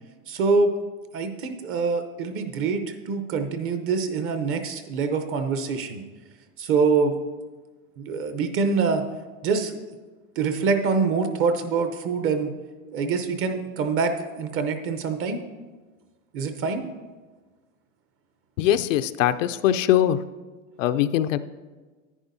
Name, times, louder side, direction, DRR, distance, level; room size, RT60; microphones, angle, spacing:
voice 1, 0.3-0.7 1.1-6.0 6.6-7.2 8.0-9.0 9.4-9.8 10.4-12.5 12.9-15.4 16.3-16.9, right 4 dB, 30° right, 7 dB, 0.8 m, -25 dB
voice 2, 18.6-20.2 20.8-21.4, left 11 dB, 70° left, 11 dB, 0.5 m, -21 dB
11.0 x 9.5 x 2.7 m, 1.3 s
supercardioid pair, 135°, 40 cm